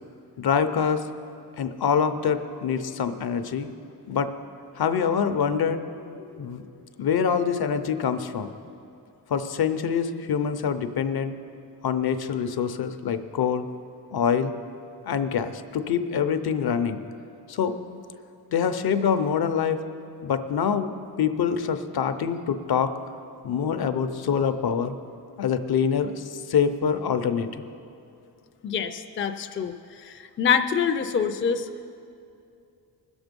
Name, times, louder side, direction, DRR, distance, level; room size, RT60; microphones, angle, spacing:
voice 1, 0.4-1.0 1.6-3.7 4.1-4.3 4.7-6.6 7.0-8.5 9.3-11.3 11.8-13.7 14.1-14.5 15.1-17.0 17.5-17.7 18.5-19.8 20.2-22.9 23.4-24.9 25.4-27.5, left 7 dB, 65° left, 9 dB, 0.7 m, -25 dB
voice 2, 28.6-29.7 30.0-31.9, left 7 dB, 30° left, 7 dB, 0.4 m, -26 dB
20.0 x 7.1 x 5.2 m, 2.6 s
wide cardioid pair, 150°, 40 cm